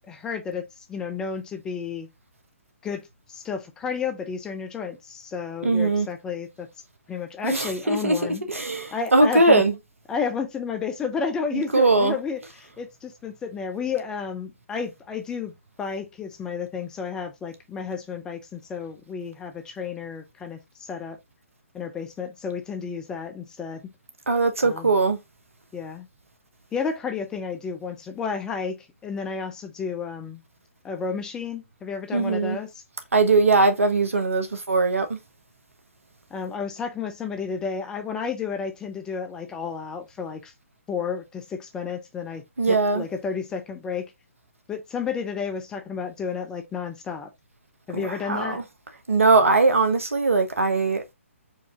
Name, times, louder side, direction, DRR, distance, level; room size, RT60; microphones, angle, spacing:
voice 1, 0.1-2.1 2.8-6.7 7.1-8.4 8.9-9.6 10.1-15.5 15.8-21.2 21.7-23.9 24.6-24.9 25.7-26.1 26.7-30.4 30.8-32.7 36.3-40.5 40.9-44.1 44.7-47.3 47.9-48.6, left 6 dB, 10° left, 0.5 m, -32 dB
voice 2, 5.6-6.1 7.4-9.7 11.5-12.1 24.3-25.2 32.1-32.6 33.1-35.2 42.6-43.0 47.9-48.6 49.1-51.0, right 3 dB, 70° right, 1.1 m, -20 dB
4.6 x 2.7 x 3.4 m
figure-of-eight pair, 130°, 8 cm